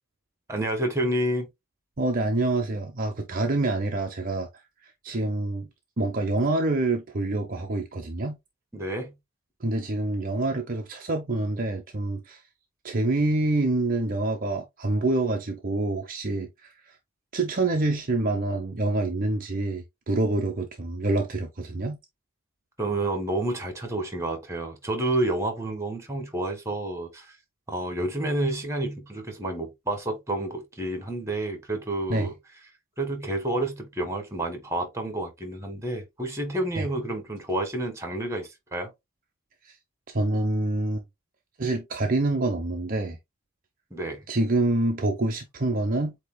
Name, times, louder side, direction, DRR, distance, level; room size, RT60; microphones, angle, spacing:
voice 1, 0.5-1.5 8.7-9.1 22.8-27.3 27.7-32.3 33.0-38.9 43.9-44.2, right 1 dB, 15° right, 1.5 m, -29 dB
voice 2, 2.0-4.5 5.0-5.7 6.0-8.4 9.6-12.4 12.8-16.7 17.3-22.0 32.1-32.3 36.8-36.9 39.6-39.7 40.1-41.0 41.6-43.2 44.3-46.2, right 2 dB, 40° right, 0.7 m, -26 dB
8.2 x 2.9 x 2.2 m
head